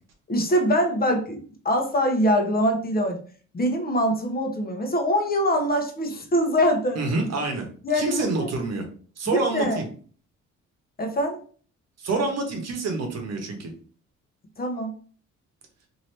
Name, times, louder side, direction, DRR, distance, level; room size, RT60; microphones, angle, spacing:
voice 1, 0.3-3.2 3.5-7.0 7.8-8.2 9.3-9.8 11.0-11.4 14.6-14.9, equal, 30° left, 3 dB, 0.8 m, -23 dB
voice 2, 7.0-7.6 7.9-8.8 9.2-9.9 12.0-13.7, right 3 dB, 55° right, 3 dB, 1.0 m, -27 dB
2.8 x 2.7 x 3.2 m, 0.43 s
cardioid pair, 90°, 30 cm